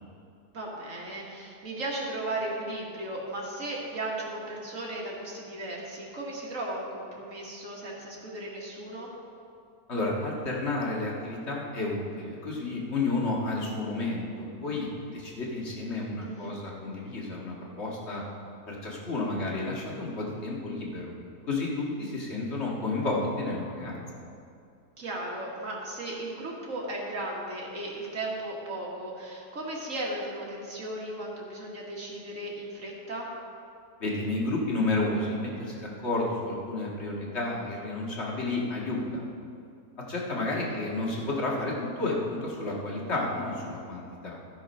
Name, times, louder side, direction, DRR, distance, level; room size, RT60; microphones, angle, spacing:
voice 1, 0.5-9.1 16.2-16.5 25.0-33.3 40.7-40.9, right 1 dB, 55° right, -3 dB, 1.9 m, -36 dB
voice 2, 9.9-18.2 18.7-21.1 21.5-24.0 34.0-39.2 40.1-44.4, left 2 dB, 45° left, -3 dB, 2.0 m, -31 dB
13.5 x 6.2 x 5.4 m, 2.5 s
omnidirectional pair, 1.7 m